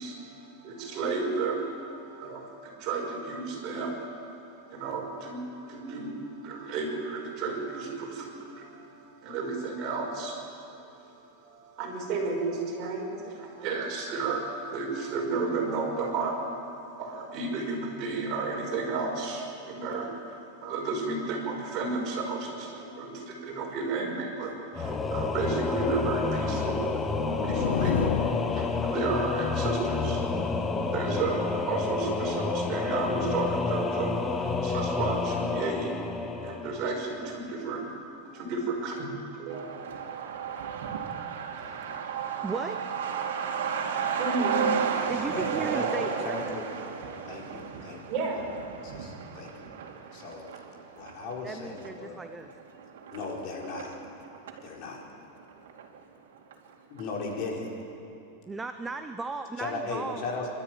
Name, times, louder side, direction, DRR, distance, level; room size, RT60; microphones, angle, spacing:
voice 1, 0.0-4.0 4.4-30.6 30.8-36.1 36.4-37.8 38.2-39.9 44.2-44.7 45.3-45.4 48.1-48.4, right 3 dB, 40° right, -1 dB, 5.6 m, -33 dB
Singing / Musical instrument, 24.7-37.3, left 4 dB, 15° left, 0.9 m, -29 dB
sound 1, 26.6-29.4, left 9 dB, 85° left, 0.8 m, -32 dB
Truck, 39.5-54.7 55.0-55.1 55.3-56.2 56.5-56.6 57.0-57.3, right 7 dB, 90° right, 2.6 m, -33 dB
voice 2, 42.4-43.0 45.0-46.8 51.4-52.5 58.5-60.2, right 4 dB, 10° right, 7 dB, 0.7 m, -36 dB
voice 3, 45.3-46.7 47.3-48.0 48.8-49.7 50.1-50.5 50.9-52.2 53.1-53.9 54.6-55.0 56.9-57.7 59.6-60.5, left 3 dB, 45° left, -1 dB, 4.3 m, -37 dB
26.5 x 13.0 x 9.2 m, 2.9 s
supercardioid pair, 150°, 0 cm